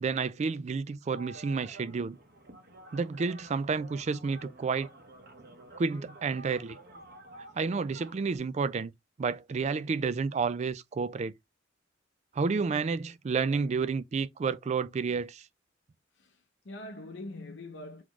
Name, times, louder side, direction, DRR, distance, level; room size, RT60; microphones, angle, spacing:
voice 1, 0.0-2.2 2.9-4.9 5.8-6.8 7.6-8.9 9.2-11.3 12.3-15.4, right 4 dB, 35° right, 0.3 m, -30 dB
sound 1, 1.1-8.4, right 2 dB, 55° right, 1.1 m, -50 dB
voice 2, 16.2-18.0, left 2 dB, 70° left, 0.7 m, -43 dB
4.1 x 3.0 x 3.0 m
head